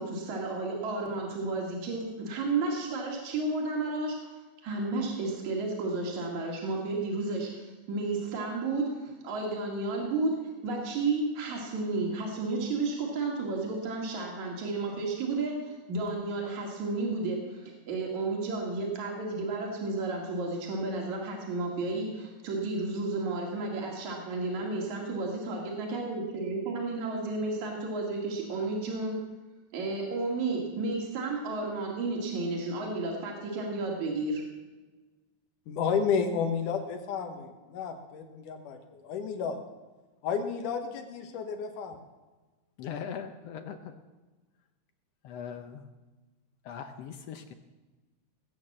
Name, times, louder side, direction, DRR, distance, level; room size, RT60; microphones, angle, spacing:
voice 1, 0.0-4.2 4.6-29.2 29.7-34.4, right 3 dB, 65° right, -1 dB, 3.6 m, -32 dB
voice 2, 35.7-39.6 40.2-42.0, left 6 dB, 85° left, 5 dB, 2.8 m, -31 dB
voice 3, 42.8-44.0 45.2-45.8 46.6-47.5, left 7 dB, 70° left, 8 dB, 1.6 m, -40 dB
19.0 x 8.8 x 7.4 m, 1.2 s
omnidirectional pair, 3.6 m